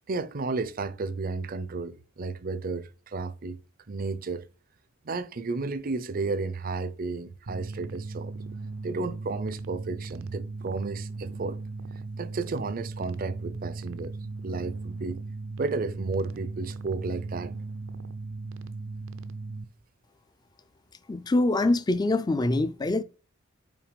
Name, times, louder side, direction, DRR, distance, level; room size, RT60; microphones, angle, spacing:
voice 1, 0.1-3.6 3.9-4.5 5.0-8.3 8.8-11.6 12.2-14.1 14.4-15.2 15.6-17.5, right 3 dB, 45° right, 0.5 m, -32 dB
sound 1, 7.5-19.6, right 3 dB, 85° right, 0.6 m, -38 dB
voice 2, 21.1-23.0, left 2 dB, 20° left, 0.4 m, -24 dB
6.0 x 4.4 x 5.0 m
head